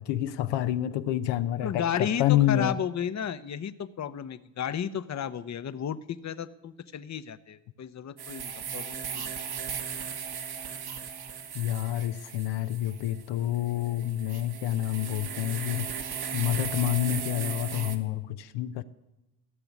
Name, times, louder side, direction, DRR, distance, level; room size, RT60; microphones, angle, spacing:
voice 1, 0.0-2.8 11.5-15.9 16.3-18.8, left 13 dB, 80° left, 9 dB, 0.8 m, -28 dB
voice 2, 1.6-9.3, left 8 dB, 40° left, 13 dB, 0.9 m, -33 dB
sound 1, 8.2-18.0, right 7 dB, 60° right, 1.6 m, -37 dB
15.5 x 6.9 x 9.6 m, 0.97 s
supercardioid pair, 60°, 43 cm